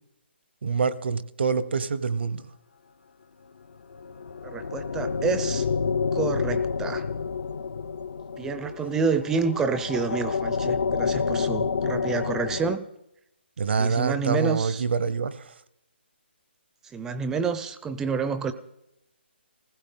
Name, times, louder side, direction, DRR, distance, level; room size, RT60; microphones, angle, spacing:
voice 1, 0.6-2.5 13.6-15.5, right 5 dB, 65° right, 0.8 m, -26 dB
sound 1, 3.9-12.8, left 5 dB, 75° left, 0.8 m, -28 dB
voice 2, 4.4-5.7 6.1-7.0 8.4-12.8 13.8-14.8 16.9-18.5, right 5 dB, 10° right, 0.5 m, -28 dB
20.5 x 15.5 x 3.8 m
hypercardioid pair, 160°, 6 cm